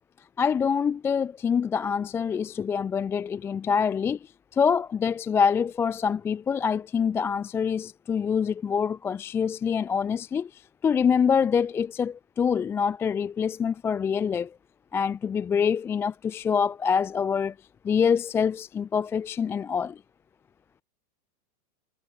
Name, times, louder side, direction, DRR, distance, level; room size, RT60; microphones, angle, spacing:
voice 1, 0.4-14.5 14.9-17.5 17.8-20.0, left 6 dB, 5° left, 0.5 m, -25 dB
supercardioid pair, 170°, 43 cm